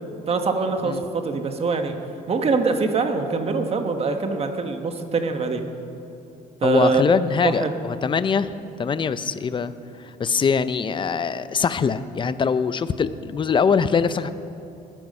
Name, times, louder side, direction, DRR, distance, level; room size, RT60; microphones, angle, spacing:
voice 1, 0.3-2.0 2.3-5.7 6.6-7.0 7.4-7.7, right 4 dB, 35° right, 6 dB, 1.4 m, -23 dB
voice 2, 6.6-9.7 10.0-14.3, left 6 dB, 30° left, 13 dB, 0.6 m, -23 dB
20.5 x 9.2 x 5.5 m, 2.7 s
cardioid pair, 110°, 17 cm